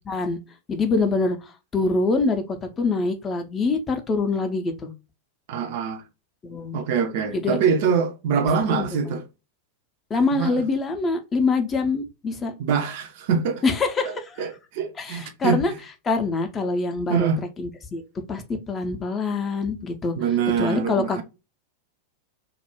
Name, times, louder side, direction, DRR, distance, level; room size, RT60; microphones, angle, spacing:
voice 1, 0.1-0.4 0.7-4.9 6.4-6.8 7.3-7.6 8.7-8.9 10.1-12.5 13.6-14.4 15.0-15.7 16.0-17.3 17.6-18.0 18.3-20.1 20.6-21.2, left 3 dB, 20° left, 0.4 m, -25 dB
voice 2, 5.5-6.0 6.7-9.2 10.4-10.6 12.6-13.6 14.0-15.6 17.1-17.4 20.2-21.2, right 6 dB, 50° right, 0.4 m, -24 dB
2.3 x 2.0 x 2.8 m
figure-of-eight pair, 90°, 0 cm